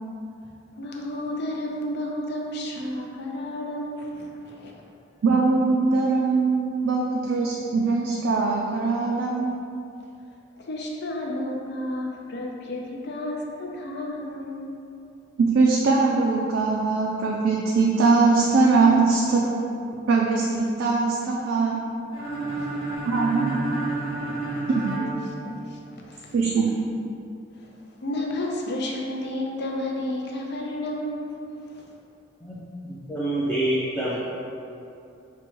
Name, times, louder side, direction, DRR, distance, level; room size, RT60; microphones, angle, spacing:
voice 1, 0.7-4.7 10.6-14.7 22.5-22.8 25.4-26.3 27.5-27.7 28.0-32.0, left 1 dB, 60° left, 0 dB, 0.5 m, -32 dB
voice 2, 5.2-9.5 15.4-19.4 20.1-21.8 23.0-23.5 24.7-24.9 26.3-26.6, right 4 dB, 70° right, -2 dB, 0.3 m, -21 dB
sound 1, 22.1-26.0, right 2 dB, 30° left, 1.0 m, -30 dB
voice 3, 32.4-34.2, right 1 dB, 5° left, -9 dB, 0.4 m, -27 dB
5.9 x 2.2 x 3.0 m, 2.7 s
head